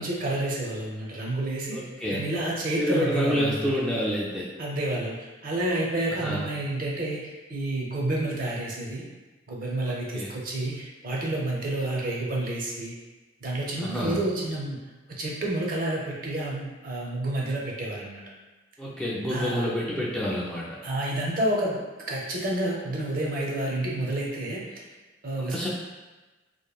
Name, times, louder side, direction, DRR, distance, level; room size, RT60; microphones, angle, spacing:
voice 1, 0.0-1.8 2.1-3.7 4.6-9.0 9.5-12.9 13.4-14.8 15.2-18.2 19.3-19.6 20.8-21.8 22.1-24.6 25.2-25.7, right 1 dB, 50° right, -3 dB, 0.6 m, -29 dB
voice 2, 1.7-2.2 2.8-4.5 6.2-6.5 9.8-10.3 13.8-14.2 18.8-20.8 25.4-25.7, equal, 5° left, -7 dB, 0.3 m, -28 dB
2.9 x 2.5 x 2.3 m, 1.2 s
head